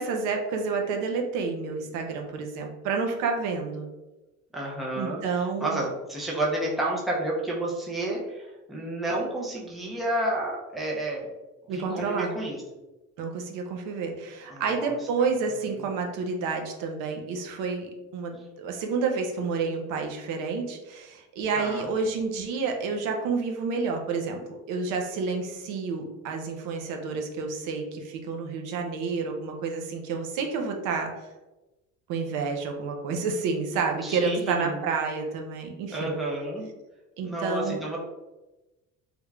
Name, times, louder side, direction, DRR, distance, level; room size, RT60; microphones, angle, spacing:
voice 1, 0.0-3.9 4.9-5.8 11.7-12.3 13.2-31.1 32.1-36.2 37.2-37.8, right 4 dB, 85° right, 3 dB, 0.7 m, -29 dB
voice 2, 4.5-11.3 11.7-12.6 14.5-15.0 15.7-15.8 21.6-21.9 33.8-34.8 35.9-36.7 37.2-38.0, right 1 dB, ahead, -4 dB, 0.5 m, -31 dB
3.4 x 2.4 x 3.1 m, 1.1 s
cardioid pair, 160°, 30 cm